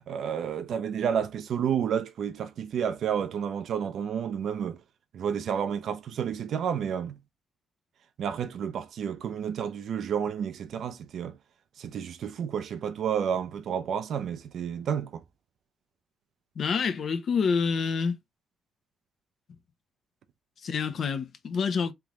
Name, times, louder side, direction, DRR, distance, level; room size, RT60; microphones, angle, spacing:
voice 1, 0.1-4.8 5.1-7.2 8.2-11.4 11.8-15.2, right 8 dB, 65° right, 0.6 m, -30 dB
voice 2, 16.6-18.1 20.6-21.9, left 5 dB, 55° left, 0.8 m, -27 dB
3.8 x 3.5 x 3.0 m
cardioid pair, 90°, 0 cm